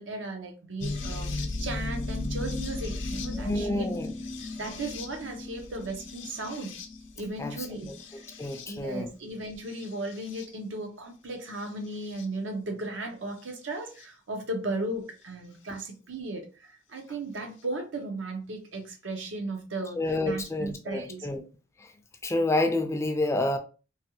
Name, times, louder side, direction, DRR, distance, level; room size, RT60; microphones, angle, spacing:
voice 1, 0.0-1.3 1.6-3.8 4.6-6.8 7.2-7.9 8.7-21.3, right 2 dB, 80° right, 0.8 m, -36 dB
sound 1, 0.8-9.0 9.7-10.5 11.6-12.3 14.0-14.1 15.8-15.9, left 2 dB, 80° left, 0.5 m, -36 dB
voice 2, 3.3-4.2 7.4-8.0 8.4-9.1 20.0-21.4 21.8-21.9 22.2-23.6, left 2 dB, 15° left, 0.3 m, -29 dB
3.2 x 2.3 x 2.9 m
head